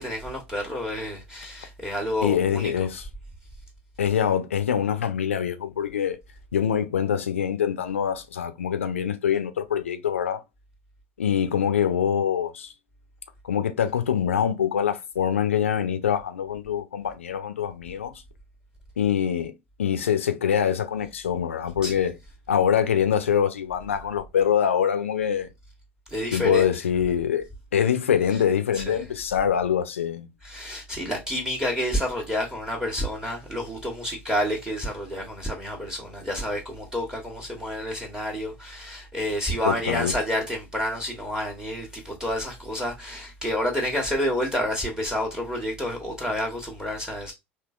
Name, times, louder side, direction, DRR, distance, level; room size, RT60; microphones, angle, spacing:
voice 1, 0.0-2.7 21.8-22.1 26.1-26.7 28.7-29.0 30.4-47.3, left 1 dB, 10° right, 1.3 m, -29 dB
voice 2, 2.2-3.1 4.0-6.2 6.5-10.4 11.2-12.7 13.4-18.2 19.0-19.5 19.8-22.2 22.5-25.5 26.3-27.4 27.7-30.3 39.7-40.1, left 8 dB, 85° left, 0.5 m, -24 dB
3.6 x 2.8 x 2.4 m
hypercardioid pair, 70°, 7 cm